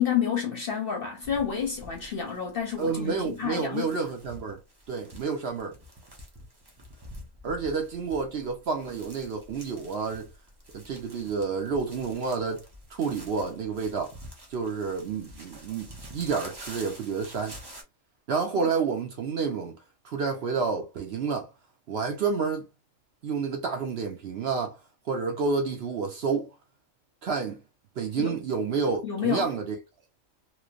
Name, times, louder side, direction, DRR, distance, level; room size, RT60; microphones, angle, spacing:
voice 1, 0.0-3.9 28.2-28.4 29.0-29.5, left 8 dB, 55° left, 0.7 m, -29 dB
sound 1, 1.2-17.8, equal, 25° right, 0.5 m, -48 dB
voice 2, 2.8-4.6 4.9-5.7 7.4-10.3 10.7-12.6 12.9-14.1 14.5-17.6 18.3-19.8 20.0-21.5 21.9-22.7 23.2-24.8 25.1-26.5 27.2-27.6 28.0-29.8, right 5 dB, 60° right, 0.7 m, -29 dB
3.1 x 2.1 x 2.4 m
omnidirectional pair, 1.4 m